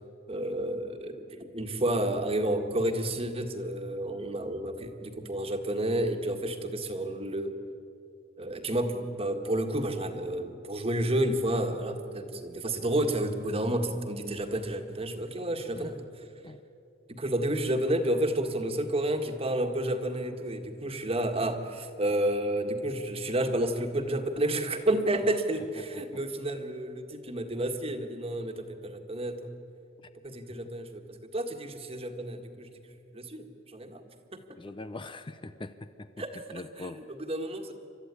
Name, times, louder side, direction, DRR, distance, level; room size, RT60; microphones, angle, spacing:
voice 1, 0.3-7.5 8.4-16.3 17.1-29.5 30.2-32.7 33.1-34.0 34.3-34.4 36.2-37.7, right 1 dB, 30° right, 5 dB, 1.7 m, -30 dB
voice 2, 25.8-26.2 34.6-36.1 36.5-37.0, left 2 dB, 25° left, 10 dB, 0.6 m, -42 dB
29.5 x 13.5 x 9.7 m, 2.7 s
head